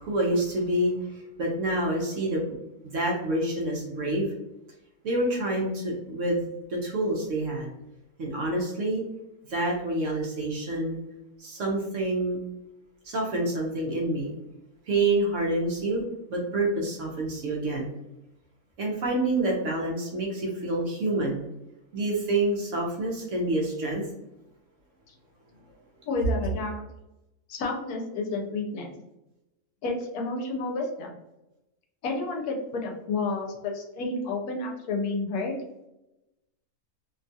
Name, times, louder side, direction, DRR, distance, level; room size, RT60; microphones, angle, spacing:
voice 1, 0.0-2.6 2.8-4.3 5.0-7.7 8.2-9.0 9.5-11.0 11.4-12.4 13.0-14.3 14.8-16.0 16.3-17.9 18.8-21.4 21.9-24.0, right 1 dB, 60° right, -2 dB, 0.9 m, -27 dB
voice 2, 26.1-26.8 27.5-28.9 29.8-31.1 32.0-35.5, left 3 dB, 75° left, 1 dB, 1.1 m, -30 dB
2.9 x 2.3 x 2.6 m, 0.92 s
omnidirectional pair, 1.7 m